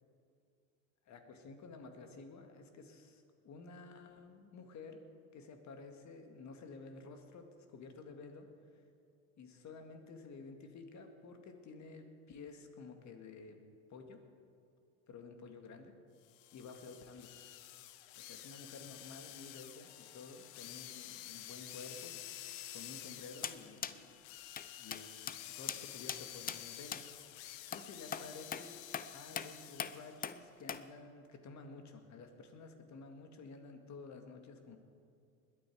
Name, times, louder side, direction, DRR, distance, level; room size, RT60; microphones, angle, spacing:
voice 1, 1.1-5.0 5.3-8.5 9.4-13.6 13.9-14.2 15.1-16.0 16.5-17.3 18.2-24.2 24.8-25.1 25.6-27.0 27.7-28.8 29.1-34.8, left 4 dB, 40° left, 5 dB, 2.0 m, -52 dB
sound 1, 16.2-30.2, left 12 dB, 65° left, 1.1 m, -50 dB
sound 2, 23.4-23.6 23.8-24.0 24.6-24.7 24.9-25.0 25.3-25.4 25.7-25.8 26.1-26.2 26.5-26.6 26.9-27.0 27.7-27.8 28.1-28.3 28.5-28.6 28.9-29.1 29.4-29.5 29.8-29.9 30.2-30.4 30.7-30.8, left 8 dB, 20° left, 0.5 m, -39 dB
20.5 x 8.9 x 4.7 m, 2.5 s
hypercardioid pair, 85°, 43 cm